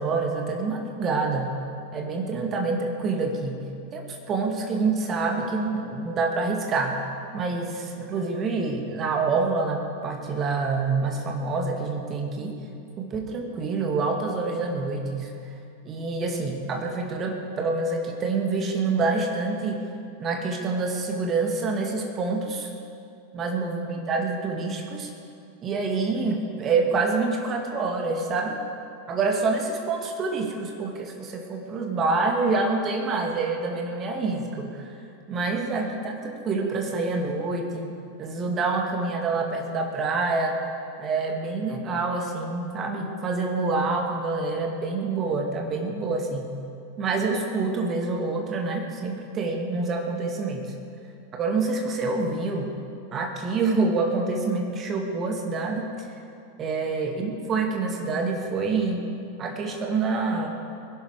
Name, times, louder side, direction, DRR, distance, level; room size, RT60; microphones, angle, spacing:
voice 1, 0.0-1.6 1.9-3.6 3.9-7.0 7.3-12.6 13.0-15.3 15.9-19.8 20.2-22.7 23.3-25.1 25.6-28.6 29.1-34.9 35.3-37.9 38.2-40.6 41.0-46.5 47.0-50.7 51.3-52.7 53.1-56.1 56.6-59.0 59.4-60.5, right 3 dB, 25° right, 2 dB, 2.1 m, -27 dB
20.5 x 12.0 x 4.9 m, 2.5 s
figure-of-eight pair, 90°, 0 cm